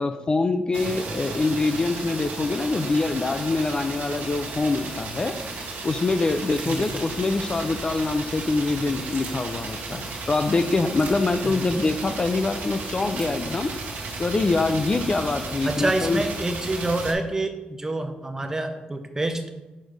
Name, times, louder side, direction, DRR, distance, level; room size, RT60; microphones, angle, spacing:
voice 1, 0.0-5.3 5.8-13.7 14.2-16.2, left 3 dB, 30° left, 8 dB, 0.3 m, -24 dB
sound 1, 0.7-17.1, right 3 dB, 80° right, 1.1 m, -34 dB
sound 2, 6.5-7.8 9.1-9.3 10.9-11.2 13.2-13.3, right 3 dB, 60° right, 1.3 m, -40 dB
voice 2, 15.6-19.5, right 2 dB, 20° right, 6 dB, 0.6 m, -27 dB
6.3 x 3.2 x 5.0 m, 1.1 s
wide cardioid pair, 135°, 3 cm